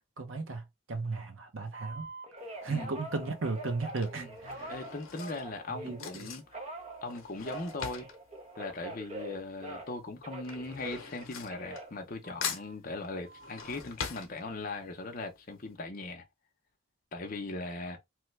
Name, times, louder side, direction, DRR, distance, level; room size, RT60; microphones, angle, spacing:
voice 1, 0.2-2.1 2.6-4.7 5.8-6.3, right 3 dB, 70° right, 0.7 m, -35 dB
Telephone, 1.7-6.1 6.5-10.0 10.2-12.7 13.2-13.7, right 2 dB, 30° right, 0.7 m, -44 dB
Drawer open or close / Cutlery silverware, 2.4-2.8 3.6-9.5 9.8-12.2 12.4-14.9 15.4-15.5 15.7-15.8, left 6 dB, 80° left, 0.7 m, -43 dB
voice 2, 4.7-6.6 7.0-8.1 8.6-16.2 17.1-18.0, left 2 dB, 40° left, 0.6 m, -39 dB
3.1 x 2.2 x 3.2 m
head